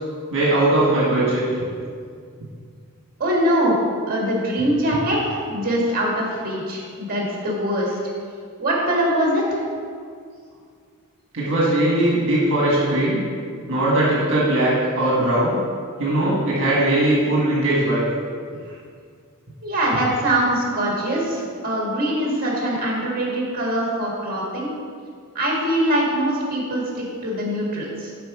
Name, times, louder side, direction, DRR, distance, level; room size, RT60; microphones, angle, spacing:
voice 1, 0.3-1.4 11.3-13.2 13.7-15.6 16.0-18.1, right 1 dB, 60° right, -6 dB, 1.6 m, -19 dB
voice 2, 3.2-3.8 4.1-8.0 8.6-9.6 19.6-24.7 25.3-28.1, right 1 dB, 40° right, -3 dB, 1.9 m, -23 dB
7.5 x 4.9 x 4.8 m, 2.1 s
head